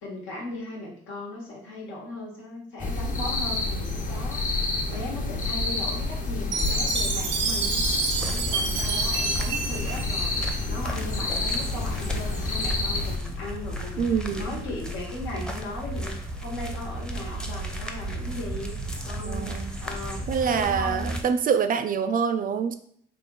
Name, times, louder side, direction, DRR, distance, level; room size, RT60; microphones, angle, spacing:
voice 1, 0.0-7.8 8.1-18.7 19.0-21.2, left 2 dB, 90° left, -2 dB, 1.3 m, -37 dB
sound 1, 2.8-13.2, left 2 dB, 40° left, 0.7 m, -28 dB
Chime, 6.5-10.9, right 5 dB, 90° right, 0.7 m, -29 dB
sound 2, 8.2-21.2, right 1 dB, 5° left, 0.6 m, -34 dB
voice 2, 14.0-14.6 19.2-19.7 20.3-22.8, right 6 dB, 45° right, 9 dB, 0.4 m, -25 dB
3.7 x 2.5 x 3.9 m, 0.66 s
cardioid pair, 90°, 20 cm